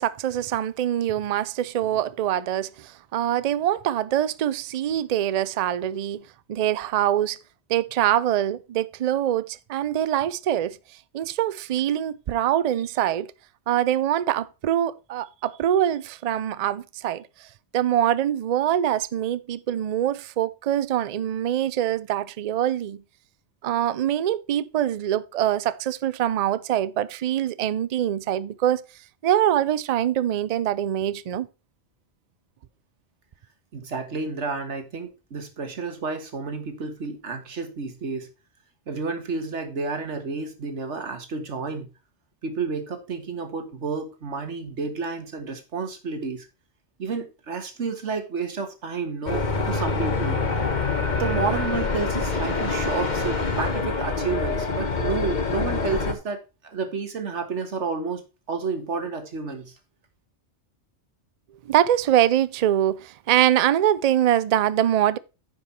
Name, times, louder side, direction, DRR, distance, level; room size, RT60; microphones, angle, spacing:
voice 1, 0.0-7.4 7.7-10.8 11.1-13.3 13.7-17.5 17.7-23.0 23.6-28.8 29.2-31.5 61.7-65.2, right 11 dB, 55° right, 0.4 m, -24 dB
voice 2, 33.7-38.3 38.9-41.9 42.4-46.5 47.0-50.8 51.2-56.4 56.6-59.7, right 4 dB, 90° right, 1.8 m, -31 dB
sound 1, 49.3-56.1, left 3 dB, 45° left, 1.2 m, -25 dB
9.7 x 5.5 x 4.2 m
omnidirectional pair, 1.2 m